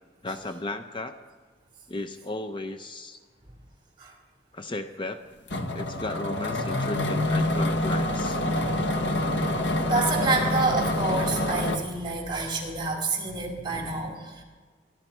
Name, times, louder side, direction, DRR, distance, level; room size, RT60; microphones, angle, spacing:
voice 1, 0.2-1.1 1.9-3.2 4.5-5.2 5.7-8.4, left 2 dB, 30° left, 8 dB, 0.7 m, -35 dB
sound 1, 5.5-11.8, left 1 dB, 70° left, 1.3 m, -26 dB
voice 2, 8.5-9.0 9.9-14.4, right 3 dB, 25° right, -1 dB, 4.0 m, -28 dB
24.5 x 12.0 x 4.5 m, 1.5 s
head